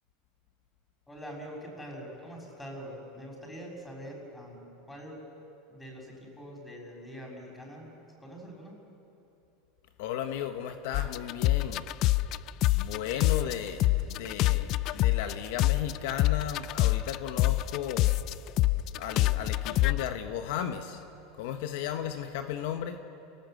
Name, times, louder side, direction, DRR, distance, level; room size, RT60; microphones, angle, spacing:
voice 1, 1.1-5.2 5.7-7.9 8.2-8.7, equal, 10° left, 0 dB, 6.3 m, -44 dB
voice 2, 10.0-11.9 12.7-18.2 18.9-21.0 21.4-23.0, left 9 dB, 70° left, 7 dB, 1.2 m, -35 dB
sound 1, 10.9-13.5 13.8-20.0, left 17 dB, 50° left, 0.5 m, -25 dB
28.5 x 18.5 x 7.9 m, 2.9 s
supercardioid pair, 130°, 0 cm